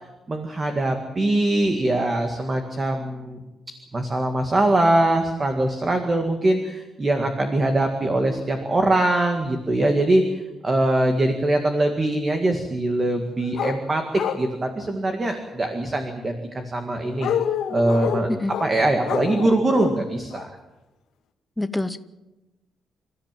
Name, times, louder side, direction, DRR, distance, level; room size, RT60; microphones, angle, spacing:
voice 1, 0.3-3.4 3.9-10.2 10.6-14.0 14.4-17.3 17.7-18.3 18.6-20.5, right 1 dB, 20° right, 5 dB, 2.0 m, -22 dB
sound 1, 13.5-13.8 14.1-14.5 17.2-18.7 19.0-19.9 20.3-20.4, left 9 dB, 85° left, 2.2 m, -27 dB
voice 2, 21.6-22.0, left 2 dB, 5° left, 11 dB, 0.8 m, -26 dB
27.5 x 14.0 x 9.2 m, 1.0 s
wide cardioid pair, 175°, 0 cm